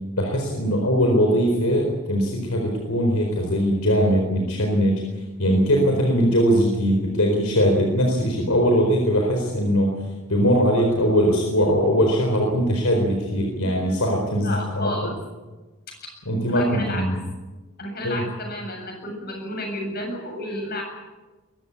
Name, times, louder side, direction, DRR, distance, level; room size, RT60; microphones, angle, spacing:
voice 1, 0.2-5.0 5.4-10.0 10.3-14.9 16.3-17.2 18.0-18.2, equal, 75° left, 1 dB, 4.3 m, -21 dB
voice 2, 14.3-15.1 15.9-16.1 16.5-17.1 17.8-20.8, left 1 dB, 45° left, 2 dB, 7.7 m, -32 dB
23.0 x 14.5 x 9.9 m, 1.2 s
head